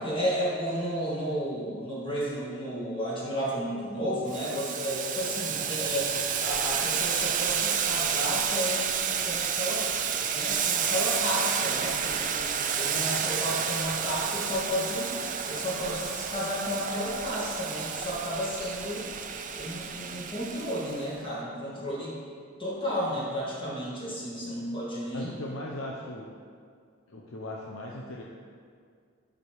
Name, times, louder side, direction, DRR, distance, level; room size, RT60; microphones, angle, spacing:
voice 1, 0.0-9.9 10.1-12.5 12.7-15.1 15.5-19.0 19.5-22.1 22.6-25.4, equal, 25° left, -7 dB, 2.2 m, -32 dB
Boiling, 4.3-21.1, right 7 dB, 40° right, 0.5 m, -30 dB
voice 2, 25.1-26.3 27.1-28.2, left 1 dB, 80° left, -2 dB, 0.8 m, -38 dB
11.5 x 5.1 x 4.8 m, 2.1 s
head